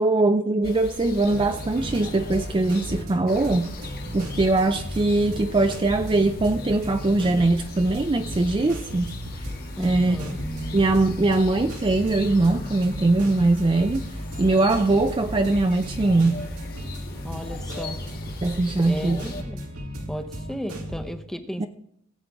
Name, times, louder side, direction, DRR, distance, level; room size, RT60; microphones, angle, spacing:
voice 1, 0.0-3.7 4.1-9.1 9.8-10.2 10.7-14.1 14.4-16.5 18.4-19.2 21.6-21.7, right 2 dB, 25° right, 7 dB, 0.4 m, -21 dB
sound 1, 0.6-19.4, left 1 dB, 45° left, 1.6 m, -38 dB
sound 2, 1.3-21.1, equal, 90° right, 2.0 m, -36 dB
voice 2, 9.8-10.4 17.2-18.0 18.9-19.6 20.1-21.7, equal, ahead, 7 dB, 0.7 m, -34 dB
19.0 x 8.2 x 3.5 m, 0.73 s
head